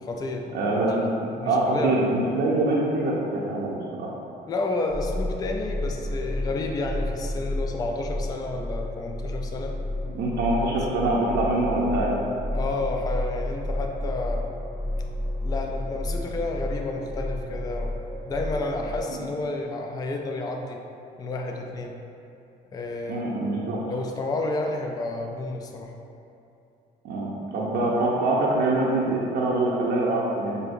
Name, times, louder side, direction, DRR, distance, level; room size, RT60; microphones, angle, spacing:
voice 1, 0.0-0.6 0.8-1.0 1.3-2.0 4.5-9.7 12.5-14.4 15.4-17.9 18.2-20.8 21.2-22.0 22.7-23.2 23.9-25.9, left 2 dB, 25° left, 2 dB, 0.3 m, -30 dB
voice 2, 0.5-1.1 1.4-4.1 10.1-12.1 19.1-19.3 23.1-23.8 27.0-30.6, right 2 dB, 75° right, -5 dB, 0.6 m, -24 dB
sound 1, 4.9-19.0, left 1 dB, 5° left, 1.0 m, -31 dB
6.2 x 2.6 x 2.5 m, 2.7 s
cardioid pair, 110°, 17 cm